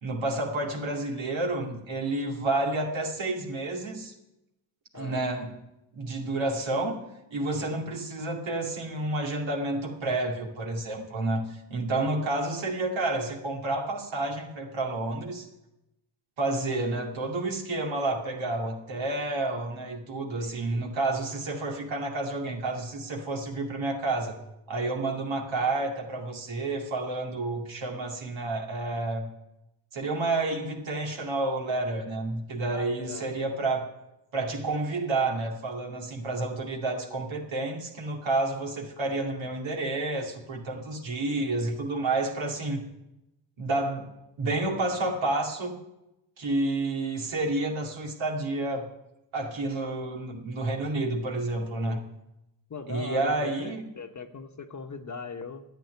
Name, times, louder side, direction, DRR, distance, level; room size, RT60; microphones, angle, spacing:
voice 1, 0.0-4.1 4.9-5.6 5.9-7.0 7.3-15.5 16.4-24.3 24.7-29.3 29.9-33.9 34.3-42.8 43.6-45.8 46.4-48.9 49.3-52.0 52.9-53.9, right 2 dB, 70° right, 0 dB, 2.5 m, -30 dB
voice 2, 4.9-5.3 20.4-20.8 32.7-33.3 51.8-52.0 52.7-55.6, left 4 dB, 35° left, 5 dB, 1.2 m, -40 dB
10.5 x 7.6 x 9.6 m, 0.91 s
supercardioid pair, 55°, 48 cm